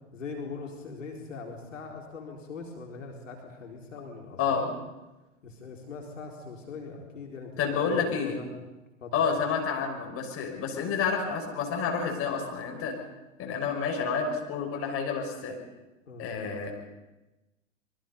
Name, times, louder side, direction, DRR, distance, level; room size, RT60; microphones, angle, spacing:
voice 1, 0.1-4.7 5.4-8.5 9.0-9.1 16.1-16.3, left 4 dB, 75° left, 0 dB, 4.2 m, -41 dB
voice 2, 7.6-8.4 9.1-13.0 13.4-15.6 16.2-16.7, left 6 dB, 35° left, 2 dB, 6.0 m, -29 dB
26.5 x 23.0 x 5.5 m, 1.0 s
figure-of-eight pair, 95°, 38 cm